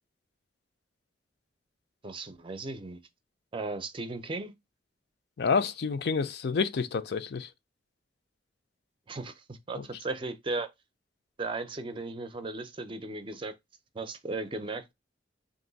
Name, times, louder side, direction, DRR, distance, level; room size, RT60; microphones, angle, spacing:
voice 1, 2.0-3.0 3.5-4.5 9.1-10.7 11.4-13.6 13.9-14.9, right 3 dB, 30° right, 0.5 m, -36 dB
voice 2, 5.4-7.5 9.7-9.8, left 5 dB, 65° left, 0.4 m, -28 dB
3.8 x 2.6 x 3.8 m
head